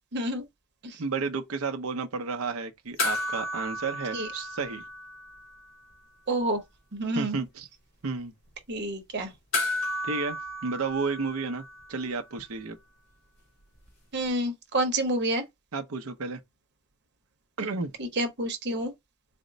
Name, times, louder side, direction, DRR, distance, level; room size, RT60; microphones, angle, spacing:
voice 1, 0.1-0.4 0.8-1.0 4.1-4.3 6.3-6.6 6.9-7.4 8.7-9.3 14.1-15.4 18.0-18.9, right 1 dB, 55° right, 0.9 m, -28 dB
voice 2, 1.0-4.8 7.2-7.7 8.0-8.3 10.0-11.6 11.9-12.8 15.7-16.4 17.6-17.9, right 4 dB, 85° right, 0.7 m, -32 dB
sound 1, 3.0-5.7 5.9-6.0 9.5-12.1 14.3-14.4, left 2 dB, 65° left, 1.8 m, -33 dB
4.3 x 2.1 x 3.8 m
head